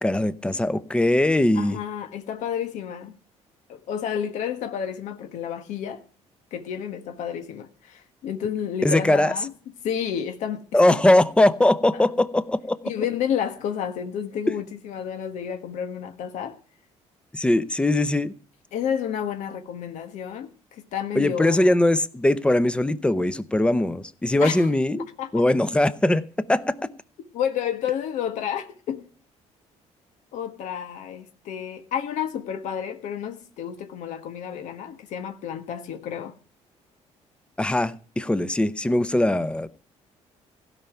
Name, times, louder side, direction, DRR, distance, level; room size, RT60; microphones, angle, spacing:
voice 1, 0.0-1.8 8.8-9.3 10.7-12.8 17.3-18.3 21.2-26.7 37.6-39.7, left 1 dB, 10° left, 0.7 m, -21 dB
voice 2, 1.5-3.1 3.7-6.0 6.5-9.5 9.8-10.7 11.9-12.0 12.8-16.5 18.7-21.7 24.4-24.7 25.2-25.3 27.3-29.1 30.3-36.3, left 8 dB, 80° left, 1.4 m, -30 dB
16.0 x 5.7 x 9.1 m
cardioid pair, 130°, 12 cm